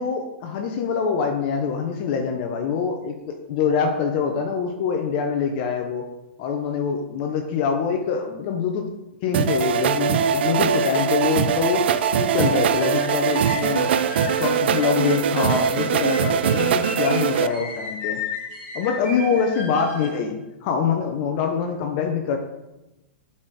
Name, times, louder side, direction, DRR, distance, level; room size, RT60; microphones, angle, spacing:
voice 1, 0.0-6.0 6.4-8.9 9.2-11.9 12.2-13.9 14.2-18.2 18.7-20.4 20.6-22.4, left 6 dB, 50° left, 3 dB, 0.8 m, -24 dB
sound 1, 9.3-17.5, right 8 dB, 70° right, 0.4 m, -22 dB
sound 2, 12.4-20.2, left 4 dB, 35° left, 2.7 m, -36 dB
7.3 x 4.4 x 4.8 m, 0.99 s
hypercardioid pair, 120°, 6 cm